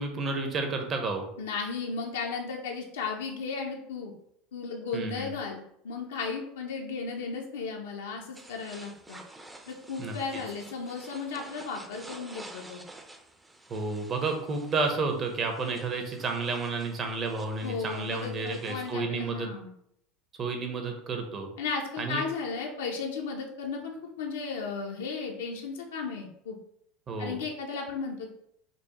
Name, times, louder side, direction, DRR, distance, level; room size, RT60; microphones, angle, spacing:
voice 1, 0.0-1.3 4.9-5.3 10.0-10.4 13.7-19.5 20.4-21.5 22.0-22.2 27.1-27.4, right 3 dB, 35° right, 4 dB, 0.8 m, -31 dB
voice 2, 1.4-4.1 4.5-9.2 9.7-12.8 17.6-19.7 21.6-26.6 27.2-28.3, left 4 dB, 90° left, 0 dB, 0.5 m, -35 dB
sound 1, 8.3-18.9, right 2 dB, 10° right, 0.5 m, -50 dB
5.2 x 2.1 x 3.0 m, 0.74 s
supercardioid pair, 100°, 0 cm